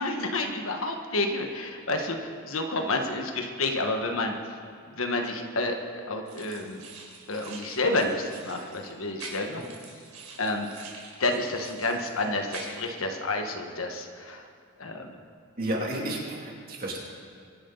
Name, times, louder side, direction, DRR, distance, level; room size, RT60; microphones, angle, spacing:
voice 1, 0.0-4.3 4.9-6.8 7.3-9.6 10.4-10.7 11.2-14.4 14.8-15.2, left 2 dB, 70° left, 3 dB, 1.5 m, -29 dB
sound 1, 6.3-12.9, right 4 dB, 80° right, 3.9 m, -45 dB
voice 2, 15.6-17.0, right 1 dB, 40° right, -3 dB, 2.9 m, -32 dB
24.0 x 11.0 x 4.0 m, 2.4 s
head